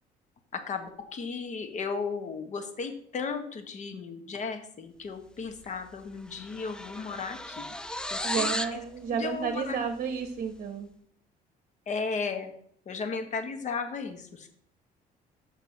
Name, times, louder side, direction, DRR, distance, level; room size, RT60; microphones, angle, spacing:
voice 1, 0.5-7.7 8.1-8.8 9.1-9.8 11.9-12.5 12.8-14.5, left 5 dB, 45° left, 7 dB, 1.4 m, -35 dB
sound 1, 5.6-5.9 6.1-8.8, left 1 dB, 5° left, 0.5 m, -34 dB
voice 2, 8.2-10.9, right 6 dB, 50° right, 6 dB, 0.9 m, -32 dB
6.7 x 6.1 x 5.8 m, 0.67 s
cardioid pair, 110°, 17 cm